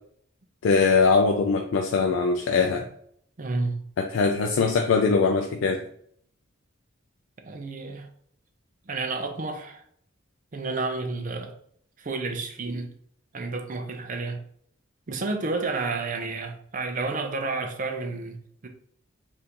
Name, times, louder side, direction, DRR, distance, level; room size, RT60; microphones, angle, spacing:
voice 1, 0.6-2.9 4.0-5.8, left 4 dB, 70° left, 0.3 m, -22 dB
voice 2, 3.4-3.8 7.4-8.1 8.9-9.8 10.5-11.5 12.0-12.9 13.3-14.4 15.1-18.4 18.6-18.7, right 3 dB, 40° right, 0.5 m, -30 dB
3.6 x 2.6 x 2.8 m
head